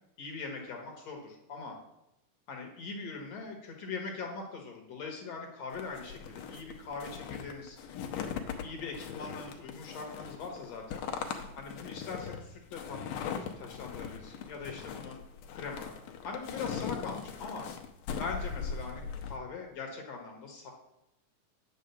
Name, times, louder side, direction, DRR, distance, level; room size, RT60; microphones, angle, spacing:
voice 1, 0.2-1.8 2.5-7.8 8.6-11.0 11.6-13.0 13.6-15.2 15.5-15.9 16.2-17.7 18.1-20.7, left 4 dB, 60° left, 1 dB, 2.4 m, -41 dB
sound 1, 5.7-19.4, left 7 dB, 85° left, 2.4 m, -40 dB
9.6 x 5.0 x 6.9 m, 0.86 s
omnidirectional pair, 3.7 m